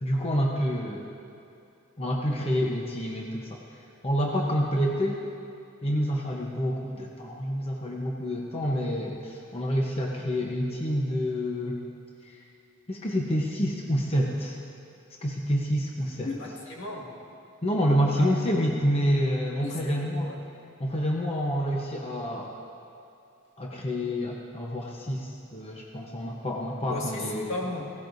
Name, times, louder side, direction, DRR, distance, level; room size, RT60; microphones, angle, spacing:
voice 1, 0.0-1.1 2.0-3.6 4.0-5.2 5.8-11.8 12.2-12.4 12.9-14.6 15.2-16.3 17.6-20.3 20.8-22.5 23.6-27.6, equal, 30° left, -1 dB, 0.9 m, -28 dB
voice 2, 16.2-17.1 18.2-18.4 19.6-20.4 26.9-27.2 27.5-27.8, left 2 dB, 70° left, -3 dB, 2.1 m, -35 dB
17.0 x 16.5 x 2.7 m, 2.6 s
head